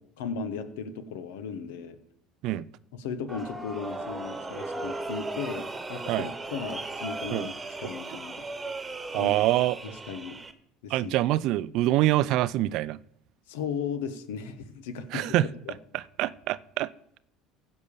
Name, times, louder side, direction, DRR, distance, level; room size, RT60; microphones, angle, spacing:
voice 1, 0.2-2.0 2.9-7.5 7.8-8.4 9.1-9.3 10.1-10.5 10.8-11.1 13.5-15.3 15.6-15.7, left 6 dB, 80° left, 11 dB, 1.2 m, -36 dB
sound 1, 3.3-10.5, right 2 dB, 20° right, 1.3 m, -37 dB
voice 2, 9.1-9.8 10.9-13.0 15.1-15.4 15.9-16.9, right 15 dB, 65° right, 19 dB, 0.4 m, -25 dB
15.0 x 5.4 x 6.9 m, 0.74 s
hypercardioid pair, 75°, 0 cm